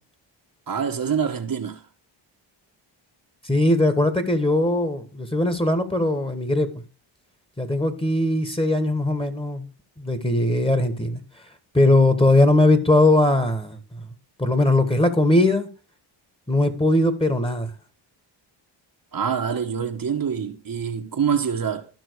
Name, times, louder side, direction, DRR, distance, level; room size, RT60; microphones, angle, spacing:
voice 1, 0.7-1.9 19.1-21.9, right 7 dB, 45° right, 1.3 m, -25 dB
voice 2, 3.4-6.8 7.6-9.6 10.0-11.2 11.7-14.0 14.4-15.7 16.5-17.7, left 1 dB, 10° left, 1.7 m, -20 dB
13.5 x 5.9 x 4.7 m
cardioid pair, 80°, 46 cm